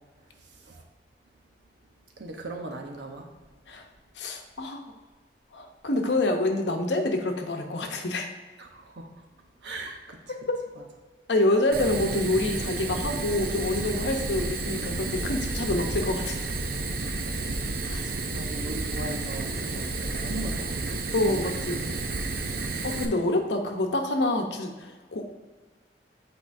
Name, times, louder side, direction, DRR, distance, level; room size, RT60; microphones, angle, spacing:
voice 1, 2.2-3.3 8.6-9.1 9.6-10.4 17.8-22.2, right 2 dB, 85° right, 2 dB, 0.9 m, -39 dB
voice 2, 4.2-4.9 5.5-8.3 10.5-10.6 11.3-16.4 17.9-18.2 21.1-21.9 22.8-25.3, left 2 dB, 85° left, 4 dB, 0.8 m, -27 dB
Fire, 11.7-23.0, right 3 dB, 55° right, 0.6 m, -31 dB
sound 1, 12.9-20.6, left 1 dB, 5° right, 1.0 m, -40 dB
8.4 x 4.4 x 2.6 m, 1.3 s
head